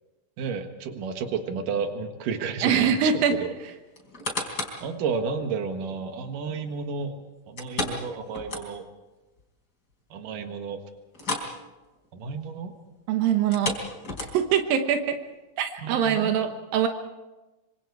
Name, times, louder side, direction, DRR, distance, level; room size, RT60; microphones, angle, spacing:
voice 1, 0.4-3.5 4.8-7.1 7.5-8.8 10.1-10.8 12.1-12.8 15.8-16.3, right 5 dB, 70° right, 6 dB, 3.2 m, -31 dB
voice 2, 2.6-3.3 13.1-13.8 14.3-15.2 15.6-16.9, right 8 dB, 90° right, 5 dB, 3.0 m, -23 dB
sound 1, 3.9-4.9 5.4-5.5 7.6-9.0 9.4-9.5 9.9-10.0 11.1-11.6 11.8-12.1 13.4-14.6 15.3-15.4, left 2 dB, 30° left, 4.3 m, -32 dB
26.0 x 25.5 x 4.8 m, 1.1 s
omnidirectional pair, 4.0 m